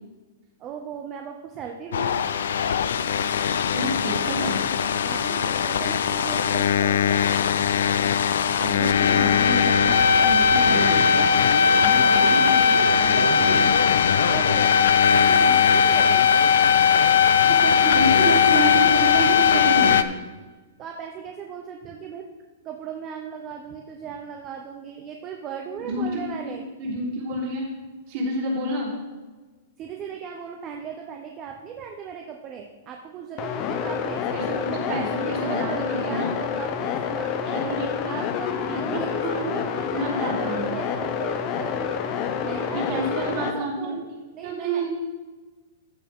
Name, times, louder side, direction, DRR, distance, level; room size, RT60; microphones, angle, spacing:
voice 1, 0.6-2.3 5.0-7.7 11.5-12.4 14.2-16.3 20.8-22.2 22.6-26.7 27.3-27.4 29.8-37.8 38.0-42.0 42.4-43.9 44.3-44.9, right 7 dB, 25° right, 2 dB, 0.7 m, -37 dB
sound 1, 1.9-20.0, left 7 dB, 85° left, 0.5 m, -19 dB
voice 2, 3.7-4.6 8.5-11.1 11.8-13.7 17.5-20.0 25.8-27.7 28.1-28.9 34.3-36.3 37.4-38.2 38.5-39.6 39.9-40.6 42.4-44.0 44.4-44.9, right 2 dB, 45° right, -5 dB, 3.7 m, -29 dB
sound 2, 33.4-43.5, left 7 dB, 30° left, 0.7 m, -28 dB
14.0 x 6.9 x 3.7 m, 1.3 s
supercardioid pair, 165°, 0 cm